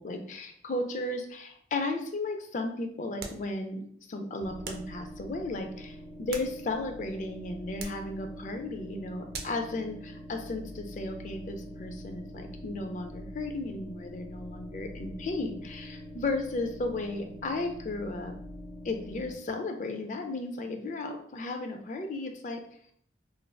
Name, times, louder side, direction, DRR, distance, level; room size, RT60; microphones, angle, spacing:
voice 1, 0.0-18.3 18.8-22.6, left 2 dB, 40° left, 5 dB, 0.3 m, -35 dB
sound 1, 3.2-3.5 4.6-5.0 6.0-6.9 7.8-8.1 9.3-9.7, right 4 dB, 55° right, 0.3 m, -42 dB
sound 2, 4.4-19.3, equal, 5° left, 1.1 m, -44 dB
3.1 x 2.5 x 2.2 m, 0.65 s
head